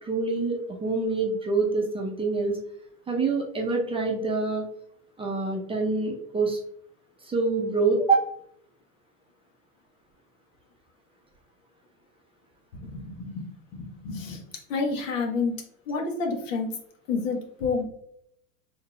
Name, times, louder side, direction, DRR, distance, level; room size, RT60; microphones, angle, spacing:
voice 1, 0.0-2.6 3.1-4.7 5.2-6.6 7.2-8.3, right 3 dB, 15° right, 0 dB, 0.8 m, -26 dB
voice 2, 12.7-14.4 14.7-15.6 15.9-16.7 17.1-17.8, left 4 dB, 65° left, 2 dB, 1.3 m, -29 dB
5.5 x 3.5 x 2.3 m, 0.70 s
hypercardioid pair, 100°, 41 cm